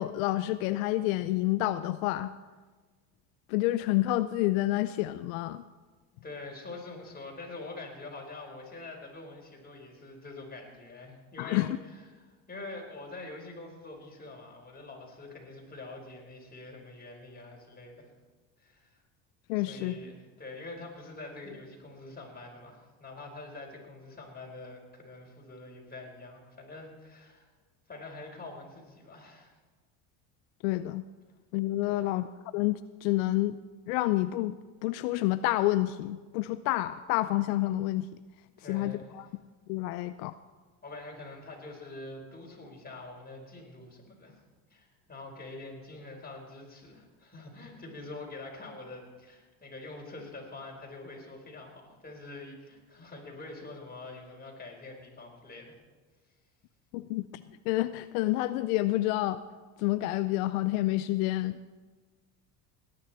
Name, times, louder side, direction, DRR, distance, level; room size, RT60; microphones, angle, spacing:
voice 1, 0.0-2.3 3.5-5.6 11.4-11.8 19.5-20.0 30.6-31.0 31.5-32.3 32.5-33.6 33.9-34.6 34.8-38.1 38.7-39.3 39.7-40.3 56.9-57.3 57.7-59.4 59.8-61.6, left 16 dB, 80° left, 13 dB, 0.6 m, -28 dB
voice 2, 6.2-18.1 18.6-19.0 19.6-27.5 27.9-29.5 31.9-32.2 38.6-39.2 40.8-44.4 44.7-55.8, left 2 dB, 20° left, -1 dB, 4.7 m, -45 dB
18.5 x 10.5 x 4.4 m, 1.3 s
supercardioid pair, 85°, 41 cm